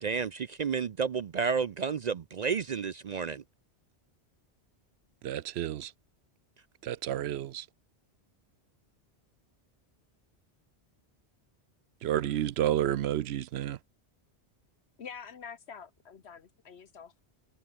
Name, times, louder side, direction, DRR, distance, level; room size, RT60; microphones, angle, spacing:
voice 1, 0.0-3.4, right 6 dB, 50° right, 0.5 m, -31 dB
voice 2, 5.2-5.9 6.8-7.7 12.0-13.8, right 12 dB, 75° right, 0.8 m, -30 dB
voice 3, 15.0-17.2, left 6 dB, 75° left, 1.5 m, -46 dB
omnidirectional pair, 1.1 m